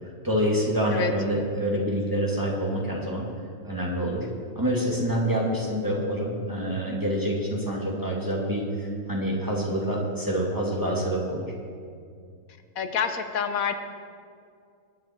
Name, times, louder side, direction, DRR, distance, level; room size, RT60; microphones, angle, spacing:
voice 1, 0.2-3.3 3.6-4.3 4.6-11.5, equal, 15° right, -3 dB, 2.2 m, -27 dB
voice 2, 12.8-13.7, left 7 dB, 75° left, 8 dB, 1.3 m, -27 dB
21.5 x 9.3 x 4.4 m, 2.3 s
omnidirectional pair, 1.5 m